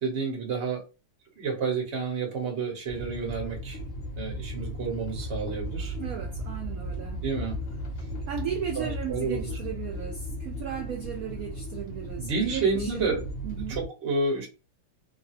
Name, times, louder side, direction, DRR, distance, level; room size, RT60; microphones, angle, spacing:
voice 1, 0.0-0.8 1.4-3.8 4.2-5.9 7.2-7.6 8.8-9.5 12.2-13.2 13.7-14.5, right 4 dB, 40° right, 1.2 m, -30 dB
sound 1, 2.9-13.9, equal, 60° left, 0.8 m, -36 dB
voice 2, 6.0-7.2 8.3-13.2 13.4-13.8, right 9 dB, 90° right, 0.7 m, -36 dB
3.2 x 2.2 x 2.7 m
omnidirectional pair, 2.2 m